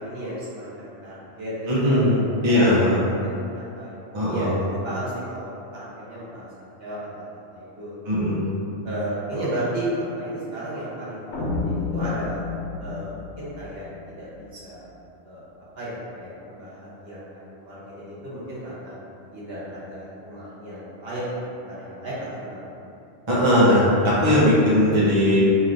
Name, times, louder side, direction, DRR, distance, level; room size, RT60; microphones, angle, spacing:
voice 1, 0.0-2.2 2.4-4.0 4.3-4.5 4.8-6.5 6.8-8.3 8.8-12.4 12.8-14.9 15.2-15.4 15.8-18.9 19.3-21.2 21.6-22.6, right 1 dB, 55° right, -9 dB, 1.2 m, -34 dB
voice 2, 1.7-2.2 2.4-3.1 4.1-4.6 8.1-8.5 23.3-25.4, left 1 dB, 30° right, -9 dB, 0.7 m, -19 dB
sound 1, 11.3-14.4, left 4 dB, 80° left, 0.9 m, -30 dB
4.5 x 3.0 x 2.6 m, 2.7 s
omnidirectional pair, 1.2 m